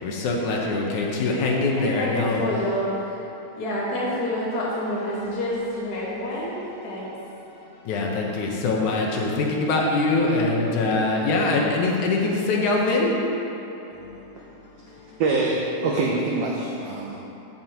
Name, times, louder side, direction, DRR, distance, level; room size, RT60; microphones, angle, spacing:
voice 1, 0.0-2.4 7.8-13.5 13.9-15.2 16.8-17.2, left 3 dB, 80° left, -1 dB, 2.5 m, -24 dB
voice 2, 0.9-3.2 3.6-7.1, left 1 dB, 40° left, -9 dB, 1.8 m, -28 dB
voice 3, 15.2-17.2, right 3 dB, 70° right, -2 dB, 1.5 m, -24 dB
14.5 x 7.3 x 3.0 m, 3.0 s
omnidirectional pair, 3.5 m